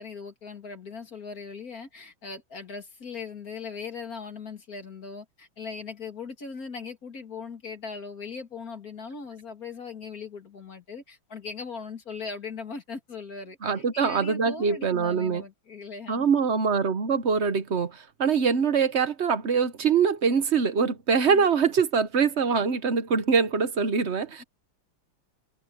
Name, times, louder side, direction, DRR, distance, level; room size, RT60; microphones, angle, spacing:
voice 1, 0.0-16.3 21.2-21.5 24.4-24.5, left 5 dB, 40° left, 3.0 m, -39 dB
voice 2, 13.6-15.4 16.1-24.4, right 6 dB, 45° right, 0.9 m, -24 dB
omnidirectional pair, 2.4 m